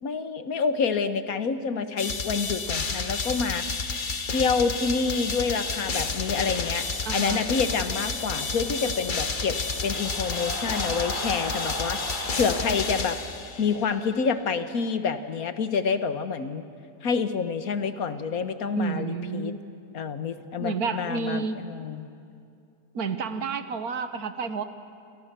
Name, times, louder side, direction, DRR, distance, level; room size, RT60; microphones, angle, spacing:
voice 1, 0.0-3.6 4.3-6.8 7.1-9.6 9.8-12.0 12.4-13.2 13.6-16.6 17.0-19.5 19.9-22.1, left 5 dB, 55° left, 10 dB, 1.6 m, -27 dB
sound 1, 2.0-13.9, left 4 dB, 35° left, 1.0 m, -31 dB
sound 2, 4.5-12.7, equal, 80° right, 8.3 m, -39 dB
voice 2, 7.0-7.4 18.7-19.6 20.6-21.7 22.9-24.6, right 5 dB, 55° right, 10 dB, 1.7 m, -30 dB
29.0 x 28.0 x 6.8 m, 2.6 s
omnidirectional pair, 2.0 m